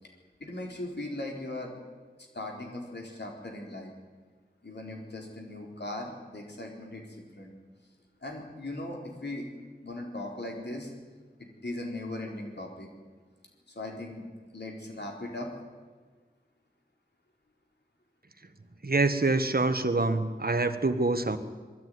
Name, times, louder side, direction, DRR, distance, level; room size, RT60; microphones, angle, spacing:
voice 1, 0.4-1.7 2.3-3.9 4.6-7.5 8.2-9.5 9.8-10.9 11.4-12.9 13.7-14.2 14.5-15.5, left 1 dB, 85° left, 0 dB, 4.2 m, -38 dB
voice 2, 18.8-21.4, right 3 dB, 60° right, 9 dB, 1.5 m, -26 dB
20.5 x 13.5 x 9.5 m, 1.4 s
wide cardioid pair, 45°, 17 cm